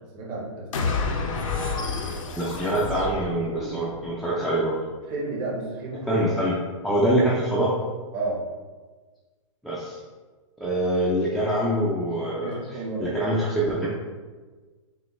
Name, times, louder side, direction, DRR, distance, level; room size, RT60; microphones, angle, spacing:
voice 1, 0.1-1.0 5.1-6.2 8.1-8.4 12.4-13.1, right 3 dB, 35° right, -2 dB, 1.1 m, -32 dB
sound 1, 0.7-4.1, left 4 dB, 75° left, 0.7 m, -29 dB
voice 2, 2.4-4.8 6.1-6.5 6.8-7.7 9.6-10.0 10.6-12.6 13.0-13.9, right 1 dB, ahead, -8 dB, 0.5 m, -24 dB
6.3 x 2.2 x 3.1 m, 1.3 s
hypercardioid pair, 140°, 17 cm